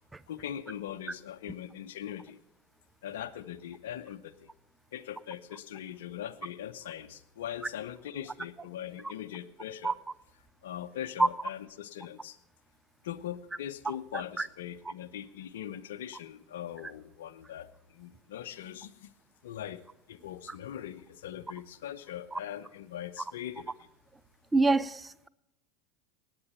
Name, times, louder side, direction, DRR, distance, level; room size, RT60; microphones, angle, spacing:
voice 1, 0.3-2.4 3.0-4.5 4.9-10.0 10.6-12.4 13.0-19.1 19.4-23.9, left 10 dB, 75° left, 0.7 m, -41 dB
voice 2, 24.5-25.3, right 3 dB, 15° right, 0.5 m, -25 dB
18.0 x 9.0 x 4.4 m
hypercardioid pair, 90°, 0 cm